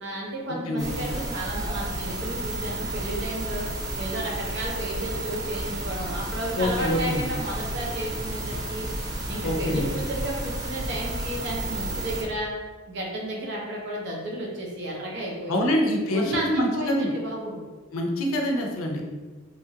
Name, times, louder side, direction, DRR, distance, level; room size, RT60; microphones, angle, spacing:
voice 1, 0.0-3.7 4.0-8.9 9.3-12.5 12.9-15.7 16.1-17.6, right 1 dB, 55° right, -2 dB, 0.6 m, -32 dB
sound 1, 0.8-12.2, right 1 dB, 15° right, 0.6 m, -32 dB
voice 2, 6.6-7.2 9.4-9.9 15.5-17.1 17.9-19.0, left 1 dB, 80° left, 1 dB, 0.5 m, -25 dB
2.9 x 2.4 x 2.7 m, 1.3 s
head